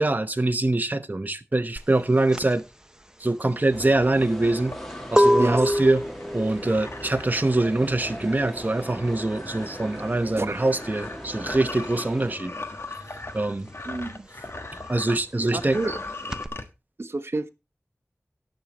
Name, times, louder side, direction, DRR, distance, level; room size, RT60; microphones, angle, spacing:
voice 1, 0.0-2.6 3.2-4.8 5.1-6.0 6.3-12.5 13.3-13.7 14.9-15.8, right 2 dB, 35° right, 0.9 m, -24 dB
sound 1, 1.8-12.0 12.3-16.5, equal, 15° right, 0.9 m, -27 dB
sound 2, 3.7-12.4, equal, 5° left, 2.3 m, -39 dB
sound 3, 3.8-15.2 15.5-16.7, left 2 dB, 55° left, 1.4 m, -39 dB
voice 2, 13.8-14.2 15.4-16.0 17.0-17.5, right 2 dB, 60° right, 1.0 m, -29 dB
18.5 x 6.5 x 3.0 m
wide cardioid pair, 55°, 5 cm